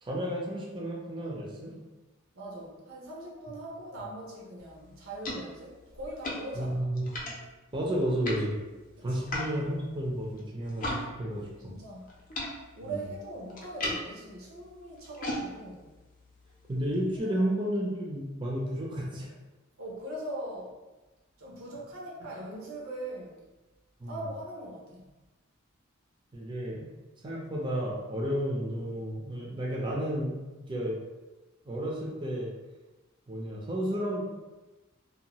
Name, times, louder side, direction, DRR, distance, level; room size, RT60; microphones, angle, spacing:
voice 1, 0.0-1.7 6.6-7.1 7.7-8.5 9.0-11.7 12.8-13.0 16.7-19.3 24.0-24.2 26.3-26.9 27.2-30.3 30.7-31.0 31.7-32.5 33.3-34.2, equal, 25° right, -4 dB, 0.4 m, -32 dB
voice 2, 2.3-6.9 9.0-9.1 11.7-12.1 12.7-15.9 17.2-17.5 19.8-20.8 21.4-23.5 24.1-25.1, right 1 dB, 90° right, -3 dB, 0.8 m, -41 dB
sound 1, 4.6-11.0 11.3-17.2, left 1 dB, 40° left, 0.5 m, -40 dB
2.7 x 2.2 x 2.9 m, 1.1 s
head